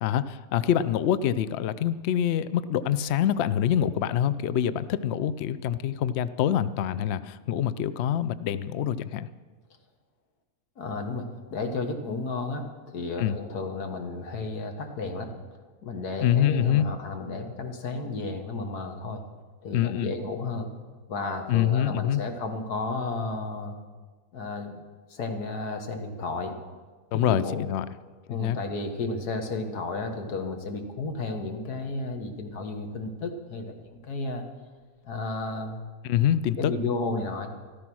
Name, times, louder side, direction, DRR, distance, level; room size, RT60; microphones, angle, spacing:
voice 1, 0.0-9.3 13.2-13.3 16.2-16.9 19.7-20.1 21.5-22.2 27.1-27.9 28.3-28.6 36.0-36.7, left 10 dB, 65° left, 15 dB, 0.7 m, -25 dB
voice 2, 10.8-11.3 11.5-15.3 15.8-19.2 19.6-20.7 21.1-23.7 24.3-24.8 25.1-26.6 27.1-27.7 28.3-34.4 35.0-35.8 36.6-37.5, left 3 dB, 90° left, 5 dB, 2.0 m, -33 dB
13.5 x 13.5 x 6.2 m, 1.4 s
omnidirectional pair, 1.6 m